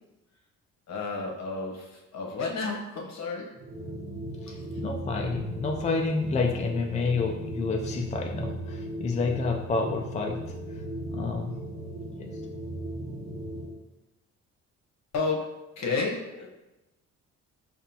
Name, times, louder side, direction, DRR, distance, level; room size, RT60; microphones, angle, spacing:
voice 1, 0.9-3.5 15.1-16.5, left 4 dB, 60° left, -1 dB, 1.0 m, -31 dB
sound 1, 3.5-13.8, right 1 dB, 65° right, 0.8 m, -37 dB
voice 2, 4.4-10.8 11.1-11.6 12.1-12.4, left 4 dB, 25° left, 1 dB, 0.4 m, -29 dB
5.2 x 2.5 x 2.7 m, 1.0 s
cardioid pair, 90°, 30 cm